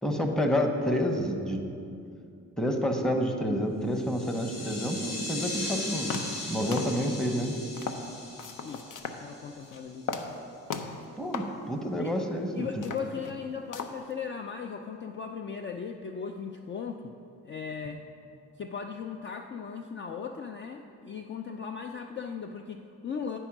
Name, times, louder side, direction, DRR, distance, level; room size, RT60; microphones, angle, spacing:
voice 1, 0.0-1.6 2.6-6.2 6.5-7.6 11.2-12.8, equal, ahead, 4 dB, 0.9 m, -29 dB
sound 1, 3.9-10.0, left 2 dB, 85° left, 1.7 m, -39 dB
sound 2, 5.6-5.7 6.1-6.5 6.7-7.3 7.8-8.1 8.4-9.2 9.6-9.8 10.1-10.4 10.7-11.0 11.3-11.6 12.0-12.1 12.7-13.4 13.7-14.1, left 6 dB, 65° left, 0.7 m, -36 dB
voice 2, 9.2-10.4 12.0-12.1 12.6-17.1 17.4-18.0 18.6-23.4, left 6 dB, 35° left, 5 dB, 0.4 m, -37 dB
9.9 x 4.5 x 6.0 m, 2.5 s
cardioid pair, 80°, 33 cm